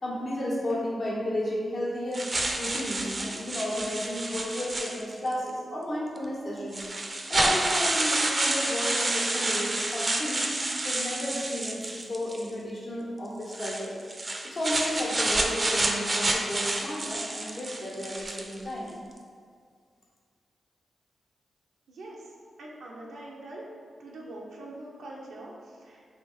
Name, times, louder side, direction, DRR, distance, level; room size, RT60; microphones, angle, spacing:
voice 1, 0.0-2.3 2.6-6.9 7.3-10.5 10.8-14.0 14.4-18.9, left 1 dB, 60° left, -6 dB, 1.3 m, -33 dB
sound 1, 2.1-5.3 6.2-6.3 6.7-12.5 13.4-18.6, right 2 dB, 35° right, 0.5 m, -29 dB
voice 2, 21.9-22.3 22.6-23.6 24.0-26.2, right 1 dB, 85° right, -3 dB, 0.6 m, -43 dB
3.3 x 2.7 x 4.4 m, 2.1 s
supercardioid pair, 45°, 0 cm